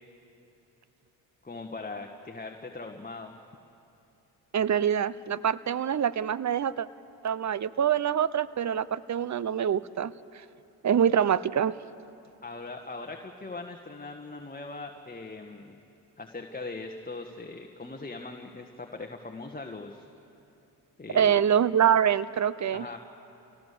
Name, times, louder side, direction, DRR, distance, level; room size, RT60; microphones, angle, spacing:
voice 1, 1.4-3.4 12.4-15.7 16.2-20.1 21.0-21.4 22.7-23.0, left 3 dB, 20° left, 3 dB, 1.6 m, -40 dB
voice 2, 4.5-6.9 7.2-10.4 10.8-11.7 21.1-22.9, right 9 dB, 35° right, 18 dB, 0.7 m, -25 dB
27.5 x 17.5 x 6.9 m, 2.8 s
supercardioid pair, 55°, 46 cm